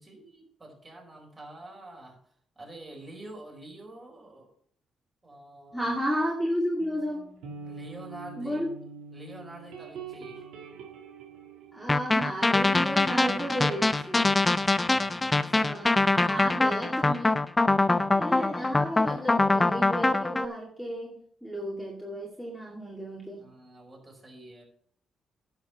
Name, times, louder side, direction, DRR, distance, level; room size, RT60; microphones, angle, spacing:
voice 1, 0.0-2.2 2.5-4.5 5.2-5.9 7.6-8.6 9.1-10.5 14.8-17.2 23.4-24.6, right 1 dB, 25° right, 0 dB, 4.7 m, -47 dB
voice 2, 5.7-7.3 8.4-8.7 11.7-14.3 15.5-15.9 16.3-17.4 18.1-21.2 21.4-23.5, equal, ahead, -3 dB, 2.2 m, -33 dB
sound 1, 6.8-12.6 12.9-16.3, right 5 dB, 90° right, 2.1 m, -46 dB
sound 2, 11.9-20.4, left 2 dB, 20° left, 0.5 m, -24 dB
10.5 x 6.0 x 5.8 m, 0.63 s
cardioid pair, 90°, 0 cm